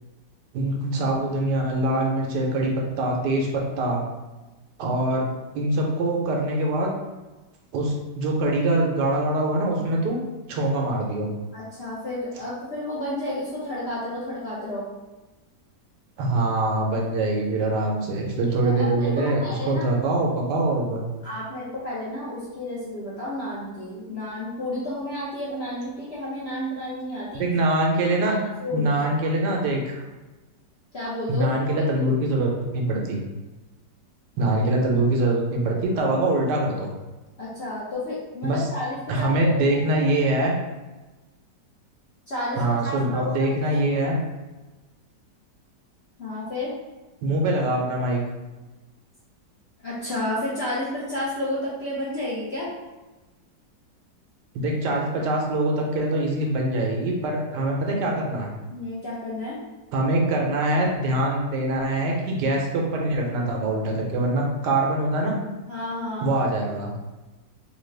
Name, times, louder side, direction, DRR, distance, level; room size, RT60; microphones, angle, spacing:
voice 1, 0.5-4.0 4.8-5.3 5.5-6.9 7.7-10.2 10.5-11.3 16.2-21.1 27.3-28.4 28.7-30.0 31.3-33.2 34.4-36.9 38.4-38.7 39.1-40.5 42.6-44.2 47.2-48.2 54.5-58.5 59.9-65.4 66.2-67.0, right 1 dB, 80° right, -1 dB, 1.2 m, -24 dB
voice 2, 11.5-14.8 18.4-19.9 21.2-27.4 28.2-28.3 28.6-29.0 30.9-31.5 32.0-32.1 37.4-39.6 42.3-43.9 46.2-46.7 49.8-52.7 58.7-59.6 65.7-66.4, left 1 dB, 55° left, -8 dB, 0.7 m, -31 dB
3.2 x 2.3 x 3.2 m, 1.1 s
omnidirectional pair, 1.9 m